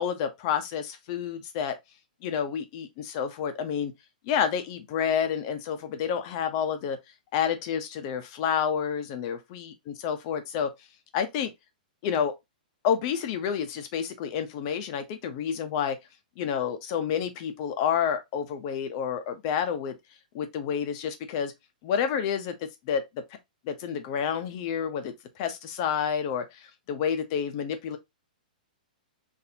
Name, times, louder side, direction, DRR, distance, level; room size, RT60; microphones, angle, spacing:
voice 1, 0.0-1.8 2.2-3.9 4.2-7.0 7.3-10.7 11.1-11.5 12.0-12.3 12.8-16.0 16.4-20.0 20.3-21.5 21.8-23.2 23.6-28.0, left 8 dB, 35° left, 0.7 m, -29 dB
4.2 x 2.6 x 2.7 m
hypercardioid pair, 155°, 5 cm